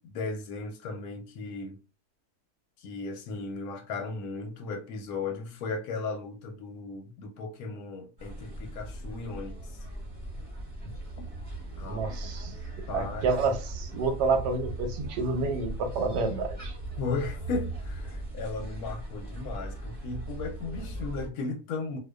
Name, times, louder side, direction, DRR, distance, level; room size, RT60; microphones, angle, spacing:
voice 1, 0.0-1.8 2.8-9.8 11.2-11.3 11.8-12.1 12.9-13.3 17.0-22.0, left 4 dB, 70° left, 1.0 m, -36 dB
sound 1, 8.2-21.3, right 2 dB, 30° right, 0.7 m, -38 dB
voice 2, 11.9-12.5 12.9-16.8, right 4 dB, 90° right, 1.2 m, -29 dB
2.6 x 2.2 x 2.2 m
omnidirectional pair, 1.8 m